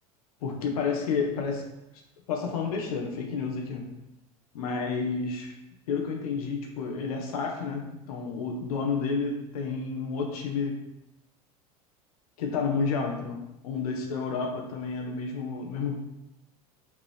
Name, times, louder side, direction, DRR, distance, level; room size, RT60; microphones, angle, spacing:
voice 1, 0.4-1.6 2.3-3.9 4.5-5.6 5.9-10.8 12.4-16.0, left 5 dB, 80° left, 2 dB, 1.5 m, -30 dB
6.0 x 4.0 x 4.7 m, 0.88 s
hypercardioid pair, 100°, 19 cm